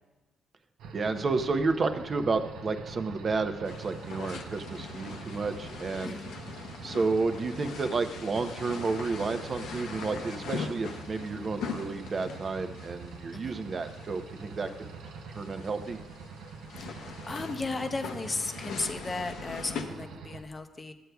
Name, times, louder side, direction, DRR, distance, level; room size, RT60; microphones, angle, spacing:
sound 1, 0.8-20.4, right 5 dB, 85° right, 0.6 m, -44 dB
voice 1, 0.9-6.2 6.8-14.9 15.3-16.0, right 4 dB, 40° right, 8 dB, 0.6 m, -31 dB
sound 2, 3.6-19.8, left 6 dB, 80° left, 0.7 m, -42 dB
voice 2, 16.8-20.9, left 3 dB, 30° left, 7 dB, 0.6 m, -35 dB
12.5 x 7.8 x 2.3 m, 1.2 s
cardioid pair, 90°, 0 cm